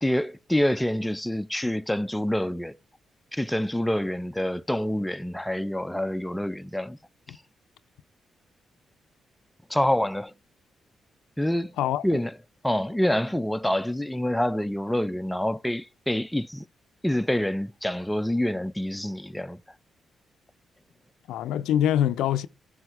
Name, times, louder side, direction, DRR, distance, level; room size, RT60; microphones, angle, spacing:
voice 1, 0.0-2.7 3.3-7.0 9.7-10.3 11.4-11.7 12.0-12.3 12.6-16.7 17.0-19.6, left 1 dB, 5° left, 0.5 m, -26 dB
voice 2, 11.8-12.2 21.3-22.5, left 11 dB, 85° left, 0.4 m, -24 dB
15.0 x 5.0 x 4.7 m
supercardioid pair, 60°, 0 cm